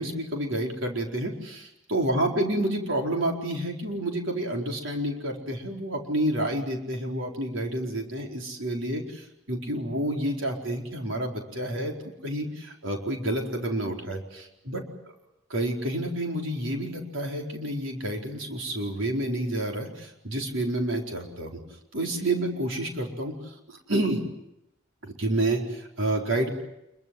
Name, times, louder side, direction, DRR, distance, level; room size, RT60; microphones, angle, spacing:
voice 1, 0.0-14.8 15.5-21.6 21.9-23.3 23.7-24.2 25.0-26.5, right 1 dB, 75° right, 1 dB, 4.5 m, -29 dB
27.0 x 23.0 x 7.9 m, 0.87 s
head